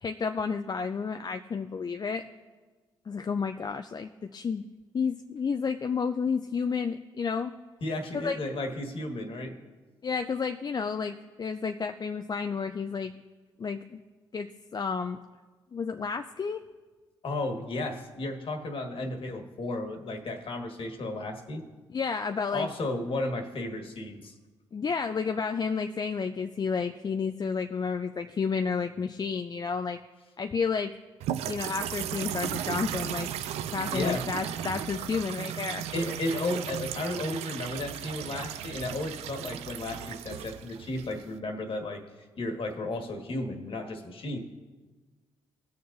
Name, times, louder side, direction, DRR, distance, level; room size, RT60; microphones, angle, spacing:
voice 1, 0.0-2.2 3.1-4.6 4.9-7.5 8.1-8.4 10.0-13.2 13.6-14.0 14.3-15.2 15.7-16.6 21.9-22.7 24.7-30.0 30.4-31.0 31.4-33.3 33.7-35.8, left 5 dB, 40° left, 6 dB, 0.5 m, -31 dB
voice 2, 7.8-9.6 17.2-21.6 22.5-24.3 33.9-34.3 35.9-42.0 42.4-44.4, left 2 dB, 55° left, 4 dB, 1.6 m, -33 dB
sound 1, 31.2-41.4, right 10 dB, 75° right, 0.4 m, -35 dB
18.5 x 6.9 x 2.6 m, 1.4 s
hypercardioid pair, 45°, 11 cm